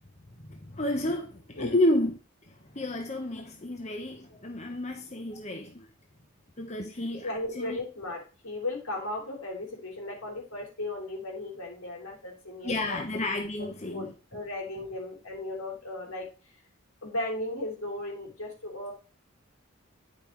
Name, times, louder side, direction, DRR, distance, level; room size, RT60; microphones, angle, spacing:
voice 1, 0.4-2.2 2.5-5.9 6.6-7.8 12.6-14.1, left 1 dB, 30° left, 1.1 m, -31 dB
voice 2, 7.2-13.0 13.6-16.6 17.0-18.9, left 2 dB, 80° left, 3.6 m, -36 dB
10.5 x 5.3 x 4.7 m
head